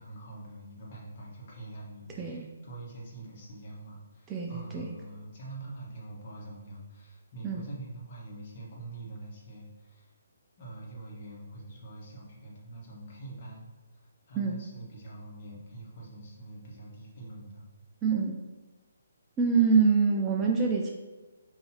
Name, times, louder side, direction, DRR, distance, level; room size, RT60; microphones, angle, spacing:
voice 1, 0.0-10.1 10.6-17.6, right 2 dB, 40° left, -4 dB, 1.3 m, -45 dB
voice 2, 2.1-2.4 4.3-4.9 7.4-7.6 14.4-14.6 18.0-18.4 19.4-20.9, right 5 dB, 15° right, -1 dB, 0.4 m, -25 dB
5.4 x 2.7 x 2.8 m, 1.2 s
figure-of-eight pair, 140°, 0 cm